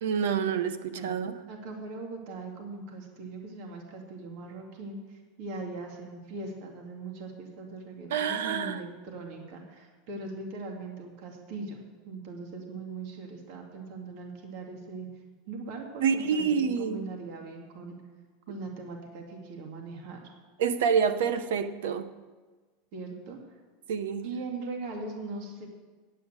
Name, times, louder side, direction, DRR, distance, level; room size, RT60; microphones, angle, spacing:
voice 1, 0.0-1.4 8.1-8.8 16.0-17.0 20.6-22.1 23.9-24.2, right 6 dB, 85° right, 12 dB, 0.8 m, -27 dB
voice 2, 1.5-15.1 15.5-16.4 16.8-18.0 18.5-20.2 22.9-23.6 24.2-25.7, right 3 dB, 60° right, 2 dB, 2.2 m, -40 dB
8.5 x 8.5 x 8.9 m, 1.3 s
supercardioid pair, 125°, 0 cm